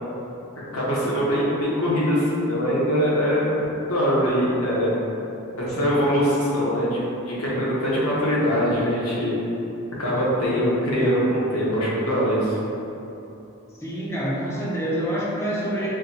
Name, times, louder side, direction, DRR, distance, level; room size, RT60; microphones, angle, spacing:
voice 1, 0.7-3.5 3.9-4.9 5.6-9.3 10.0-12.5, equal, 75° left, -7 dB, 1.1 m, -22 dB
voice 2, 13.8-15.9, right 1 dB, 15° left, -7 dB, 0.7 m, -26 dB
5.7 x 2.3 x 2.7 m, 2.8 s
head